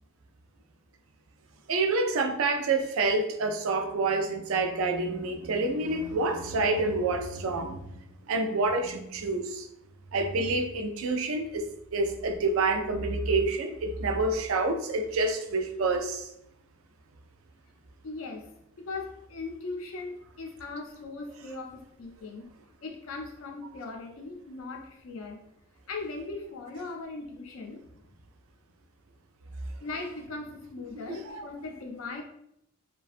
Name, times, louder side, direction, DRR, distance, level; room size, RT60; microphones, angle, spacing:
voice 1, 1.7-9.7 10.1-16.3 31.1-31.5, right 3 dB, 75° right, 5 dB, 0.4 m, -28 dB
voice 2, 18.0-18.5 18.8-22.5 22.8-25.4 25.9-28.1 29.8-32.2, left 3 dB, 75° left, 2 dB, 0.5 m, -39 dB
2.5 x 2.2 x 2.4 m, 0.77 s
head